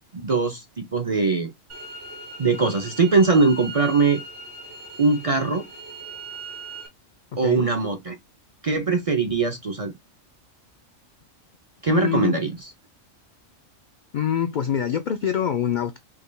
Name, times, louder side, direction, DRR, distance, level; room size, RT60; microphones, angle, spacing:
voice 1, 0.2-1.5 2.4-4.2 5.0-5.6 7.4-8.1 8.6-9.9 11.8-12.6, right 4 dB, 40° right, 0.5 m, -21 dB
sound 1, 1.7-6.9, right 2 dB, 65° right, 2.4 m, -39 dB
voice 2, 7.3-7.7 11.9-12.4 14.1-16.0, left 8 dB, 70° left, 0.4 m, -25 dB
5.8 x 3.3 x 2.2 m
omnidirectional pair, 1.3 m